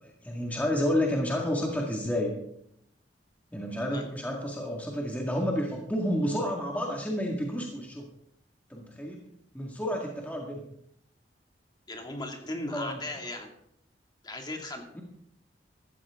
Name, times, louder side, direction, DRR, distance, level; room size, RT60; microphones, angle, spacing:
voice 1, 0.0-2.3 3.5-8.1 8.7-9.2 9.5-10.6 12.7-13.0 15.0-15.1, equal, 10° left, -1 dB, 1.9 m, -30 dB
voice 2, 11.9-13.5 14.2-14.9, left 2 dB, 25° left, 2 dB, 2.3 m, -37 dB
15.5 x 13.5 x 3.7 m, 0.72 s
head